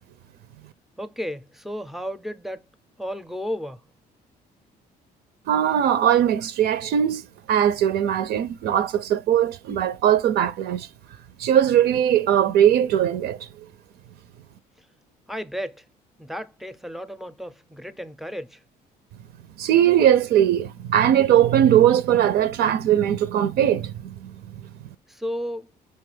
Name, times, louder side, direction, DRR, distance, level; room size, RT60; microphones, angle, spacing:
voice 1, 1.0-2.6 3.0-3.8 15.3-15.8 16.2-18.6 25.1-25.7, equal, ahead, 0.5 m, -33 dB
voice 2, 5.5-10.9 11.4-13.5 19.6-24.6, right 10 dB, 70° right, 0.5 m, -20 dB
5.5 x 2.3 x 3.2 m
cardioid pair, 110°, 17 cm